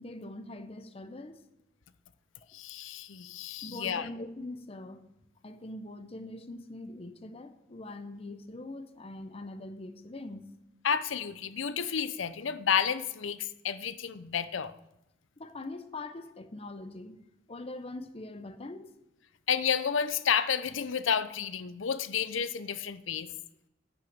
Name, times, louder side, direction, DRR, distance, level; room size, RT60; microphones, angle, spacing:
voice 1, 0.0-1.4 3.6-5.0 5.4-10.5 15.4-17.2 17.5-18.9, left 2 dB, 30° left, 0.7 m, -42 dB
voice 2, 2.5-4.1 10.8-14.7 19.5-23.3, left 7 dB, 75° left, 0.6 m, -31 dB
11.5 x 5.7 x 8.0 m
head